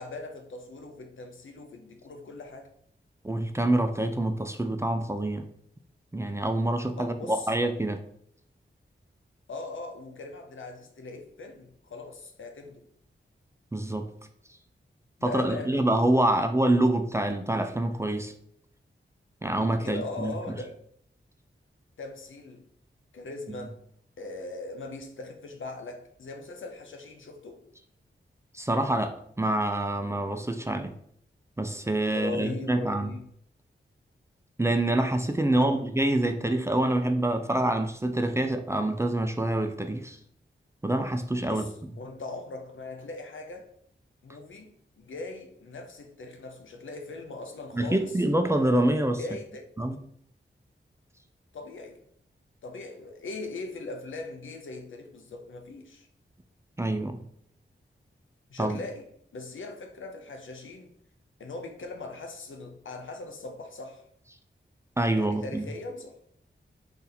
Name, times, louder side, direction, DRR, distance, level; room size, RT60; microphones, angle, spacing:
voice 1, 0.0-2.7 7.0-7.5 9.5-12.8 15.2-15.8 16.3-16.4 19.8-20.7 22.0-22.6 23.1-23.7 24.2-27.6 32.1-33.3 35.5-35.8 41.5-43.7 44.2-48.1 49.2-49.7 51.5-52.0 52.6-56.1 58.5-59.0 59.3-60.9 61.4-64.0 65.1-66.2, left 3 dB, 70° left, 0.6 m, -40 dB
voice 2, 3.2-5.5 6.1-8.0 13.7-14.1 15.2-18.3 19.4-20.6 28.5-30.9 31.6-33.1 34.6-40.2 40.8-41.7 47.7-49.2 49.8-50.0 56.8-57.2 58.6-58.8 65.0-65.7, right 1 dB, 15° right, 0.4 m, -26 dB
2.7 x 2.6 x 3.9 m
cardioid pair, 45°, 21 cm